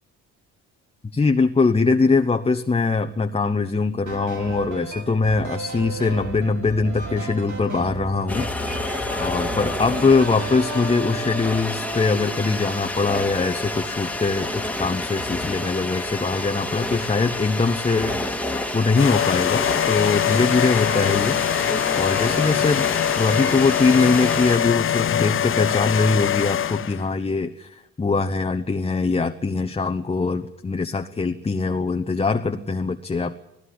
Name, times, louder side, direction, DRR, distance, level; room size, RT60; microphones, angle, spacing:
voice 1, 1.1-8.5 9.2-18.2 18.7-21.4 21.9-22.9 23.2-33.4, left 4 dB, 20° left, 5 dB, 1.0 m, -22 dB
sound 1, 4.1-11.0, right 2 dB, 75° right, 7.0 m, -34 dB
sound 2, 8.3-24.6, left 1 dB, 5° left, 1.9 m, -29 dB
sound 3, 18.9-27.1, left 10 dB, 45° left, 0.7 m, -23 dB
18.5 x 16.0 x 9.8 m, 0.88 s
cardioid pair, 90°, 30 cm